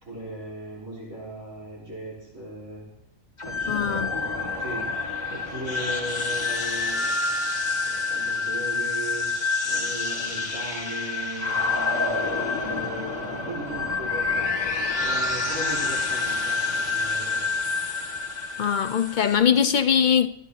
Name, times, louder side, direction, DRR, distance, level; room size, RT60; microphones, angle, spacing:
voice 1, 0.0-2.8 3.4-7.1 7.9-17.5, right 1 dB, 75° right, 4.1 m, -38 dB
sound 1, 3.4-19.4, left 4 dB, 30° left, 2.0 m, -27 dB
voice 2, 3.7-4.1 18.6-20.3, left 8 dB, 60° left, 0.5 m, -21 dB
23.0 x 10.5 x 2.8 m
omnidirectional pair, 1.4 m